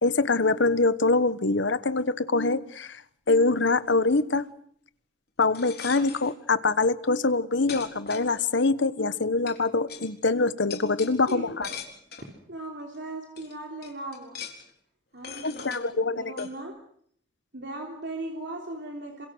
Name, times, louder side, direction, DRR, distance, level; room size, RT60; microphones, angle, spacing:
voice 1, 0.0-3.0 3.3-4.5 5.4-11.7 15.4-16.5, left 3 dB, 85° left, 1.2 m, -24 dB
sound 1, 5.4-6.3 7.2-7.3 7.7-8.7 9.5-9.6 9.9-10.1 10.7-12.3 12.9-13.0 13.4-13.5 13.8-14.7 15.2-15.8 16.4-16.5, left 7 dB, 60° left, 4.1 m, -40 dB
voice 2, 11.3-11.8 12.2-14.4 15.1-16.8 17.5-19.3, right 2 dB, 70° right, 3.3 m, -38 dB
28.5 x 26.0 x 6.3 m
head